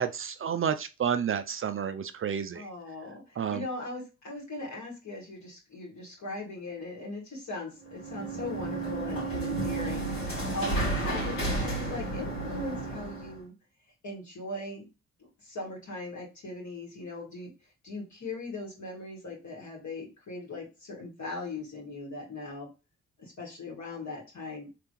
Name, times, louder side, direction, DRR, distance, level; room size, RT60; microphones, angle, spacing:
voice 1, 0.0-2.7 3.4-3.6, right 7 dB, 40° right, 11 dB, 0.4 m, -30 dB
voice 2, 2.5-13.5 14.0-14.8 15.4-17.5 17.8-22.7 23.2-24.7, left 2 dB, 55° left, -2 dB, 2.3 m, -39 dB
sound 1, 7.9-13.4, right 2 dB, 70° left, 2.1 m, -32 dB
3.3 x 3.3 x 3.1 m, 0.29 s
hypercardioid pair, 40°, 34 cm